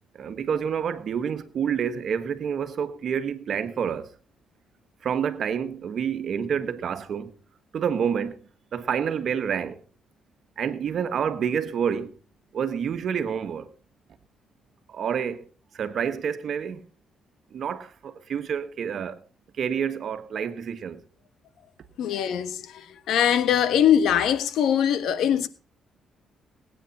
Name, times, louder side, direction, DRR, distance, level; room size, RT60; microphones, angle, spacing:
voice 1, 0.1-4.1 5.0-7.3 7.7-8.3 8.7-9.8 10.6-12.1 12.5-13.7 14.9-15.4 15.8-16.8 17.5-19.2 19.6-21.0, right 7 dB, 60° right, 1.5 m, -28 dB
voice 2, 22.0-25.5, left 9 dB, 75° left, 1.4 m, -22 dB
19.0 x 9.4 x 4.2 m
cardioid pair, 90°, 0 cm